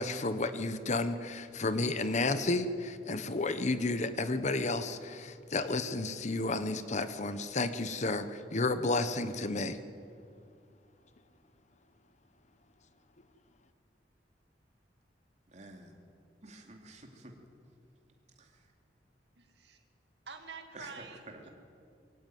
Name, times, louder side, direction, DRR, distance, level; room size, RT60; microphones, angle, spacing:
voice 1, 0.0-9.8, left 2 dB, 40° left, 11 dB, 1.0 m, -32 dB
voice 2, 15.5-16.0 16.4-17.4 18.4-18.7 20.7-21.5, right 2 dB, 40° right, 2 dB, 2.8 m, -50 dB
voice 3, 19.4-19.8 20.3-21.5, right 4 dB, 70° right, 4 dB, 2.1 m, -48 dB
23.0 x 16.0 x 9.2 m, 2.4 s
head